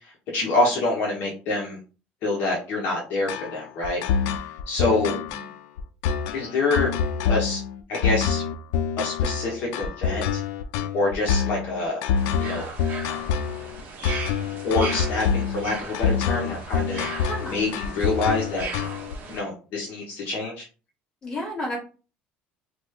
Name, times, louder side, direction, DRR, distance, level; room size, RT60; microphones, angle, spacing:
voice 1, 0.3-1.8 2.2-4.0 4.7-5.1 6.3-6.9 7.3-7.6 7.9-8.4 9.0-10.4 10.9-12.0 12.4-12.7 14.6-17.1 17.5-18.7 19.3-20.6, left 2 dB, 55° left, -2 dB, 0.8 m, -26 dB
sound 1, 3.3-19.1, left 7 dB, 85° left, 0.4 m, -26 dB
voice 2, 4.8-5.5 14.9-15.1 17.3-17.7 21.2-21.8, equal, 20° left, -5 dB, 1.6 m, -34 dB
sound 2, 12.2-19.4, right 4 dB, 45° right, 0.8 m, -37 dB
3.0 x 2.2 x 3.2 m, 0.35 s
cardioid pair, 160°, 4 cm